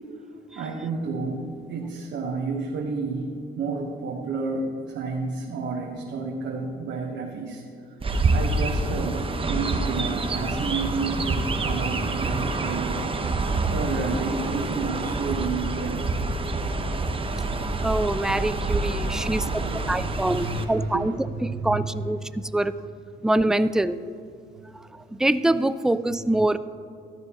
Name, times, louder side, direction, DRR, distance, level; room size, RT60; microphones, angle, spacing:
voice 1, 0.5-3.3 3.6-8.0 8.3-13.0 13.6-16.2 18.7-21.1 21.4-22.1, right 4 dB, 70° right, 0 dB, 1.2 m, -31 dB
Chirp tweet, 8.0-20.7, right 2 dB, 25° right, 0.8 m, -27 dB
voice 2, 17.8-21.1 21.4-22.7 23.2-24.0 24.7-26.6, right 1 dB, 5° right, 13 dB, 0.3 m, -25 dB
14.0 x 11.0 x 3.0 m, 2.4 s
cardioid pair, 90°, 20 cm